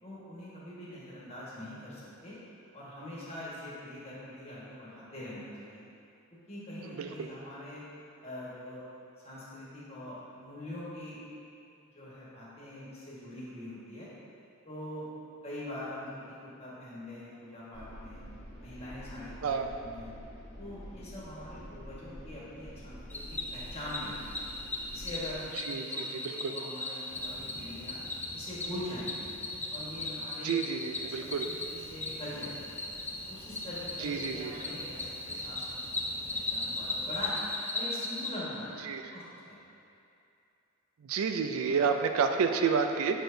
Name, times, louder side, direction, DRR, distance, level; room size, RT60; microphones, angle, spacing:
voice 1, 0.0-2.4 2.7-5.8 6.5-7.8 8.2-8.8 9.2-11.2 11.8-14.1 14.6-15.1 15.4-18.2 18.6-20.1 20.6-24.3 24.9-28.0 28.3-29.2 29.7-30.6 31.0-32.8 33.3-37.4 37.7-39.2 39.6-39.7, left 1 dB, 25° left, -8 dB, 1.4 m, -43 dB
voice 2, 6.8-7.3 19.4-19.7 25.7-26.5 30.4-31.5 34.0-34.5 38.9-39.0 41.0-43.2, right 6 dB, 75° right, 6 dB, 0.4 m, -30 dB
sound 1, 17.7-25.3, equal, 55° left, 1.2 m, -47 dB
Cricket, 23.1-38.3, left 2 dB, 10° left, 0.3 m, -37 dB
Fire, 27.0-30.2 30.6-37.6, equal, 25° right, 1.1 m, -52 dB
6.5 x 6.0 x 2.6 m, 2.7 s
head